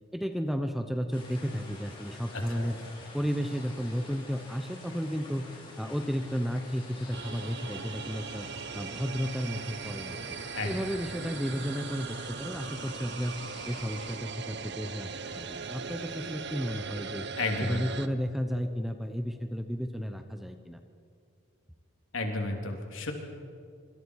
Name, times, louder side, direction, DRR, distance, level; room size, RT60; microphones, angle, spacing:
voice 1, 0.1-2.8 3.1-5.5 5.8-8.5 8.7-10.4 10.6-13.3 13.7-17.3 17.7-20.8, equal, ahead, 6 dB, 0.9 m, -33 dB
sound 1, 1.1-14.2, left 2 dB, 25° left, 4.1 m, -48 dB
voice 2, 2.3-2.7 10.5-10.7 17.4-18.0 22.1-23.1, left 2 dB, 65° left, 2 dB, 3.4 m, -32 dB
sound 2, 7.1-18.1, right 5 dB, 55° right, 0.8 m, -39 dB
26.0 x 25.5 x 4.8 m, 2.3 s
head